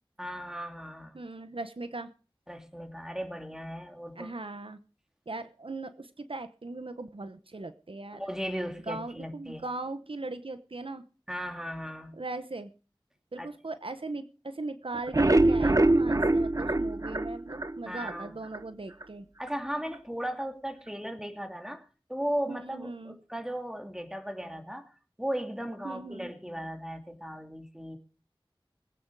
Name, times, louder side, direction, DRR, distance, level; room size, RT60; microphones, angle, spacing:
voice 1, 0.2-1.2 2.5-4.3 8.1-9.7 11.3-12.1 13.4-13.5 17.9-18.4 19.4-24.9 25.2-28.0, equal, 5° right, 5 dB, 2.5 m, -36 dB
voice 2, 1.1-2.1 4.2-4.8 5.3-8.2 8.9-11.0 12.1-12.7 13.3-19.3 22.5-23.2 25.8-26.3, right 2 dB, 80° right, 11 dB, 1.0 m, -39 dB
sound 1, 14.9-18.2 18.5-18.6 19.0-19.1 19.5-19.6, right 2 dB, 40° right, 0.7 m, -24 dB
20.5 x 9.1 x 4.8 m, 0.36 s
wide cardioid pair, 45°, 9 cm